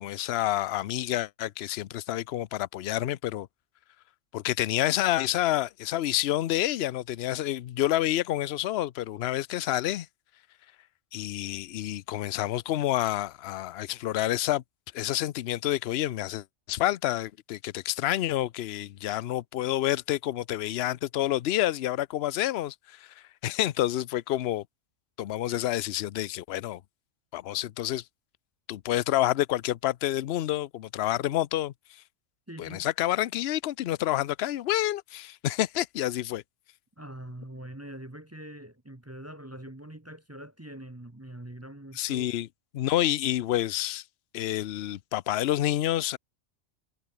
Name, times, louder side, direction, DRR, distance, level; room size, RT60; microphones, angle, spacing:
voice 1, 0.0-3.5 4.3-10.1 11.1-14.6 14.9-23.1 23.4-24.6 25.2-26.8 27.3-28.0 28.7-31.7 32.6-36.4 41.9-42.5 42.7-44.0 44.3-46.2, left 13 dB, 60° left, 0.8 m, -28 dB
voice 2, 32.5-32.8 37.0-42.3, right 1 dB, 15° right, 1.0 m, -43 dB
omnidirectional pair, 1.4 m